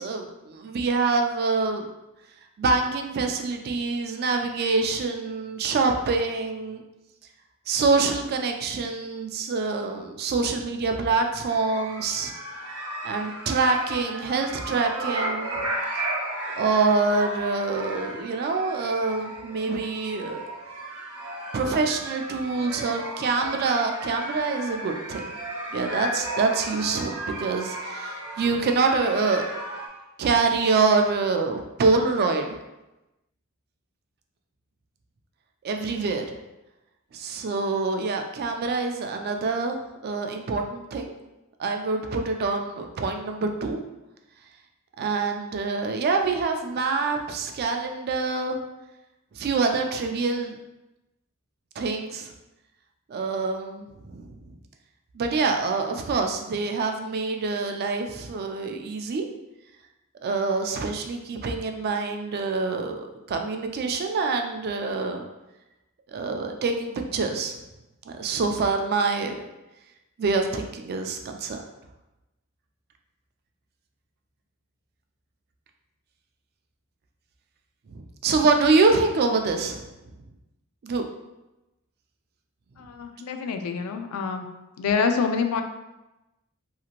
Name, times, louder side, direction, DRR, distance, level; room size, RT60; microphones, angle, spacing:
voice 1, 0.0-1.9 2.6-6.8 7.7-12.3 13.0-15.6 16.6-20.4 21.5-25.3 25.7-29.4 30.2-32.6 35.6-36.4 37.1-39.8 40.0-41.1 41.6-43.8 45.0-48.6 49.3-50.6 51.8-52.3 53.1-54.3 55.1-59.3 60.2-65.2 66.1-67.6 68.1-69.4 70.2-71.6 77.9-79.8 80.8-81.0, right 4 dB, 45° right, 4 dB, 0.3 m, -25 dB
sound 1, 11.5-29.9, right 1 dB, 85° right, 0.6 m, -34 dB
voice 2, 82.8-84.5 84.8-85.6, left 5 dB, 80° left, 6 dB, 0.3 m, -26 dB
2.8 x 2.8 x 2.4 m, 0.99 s
head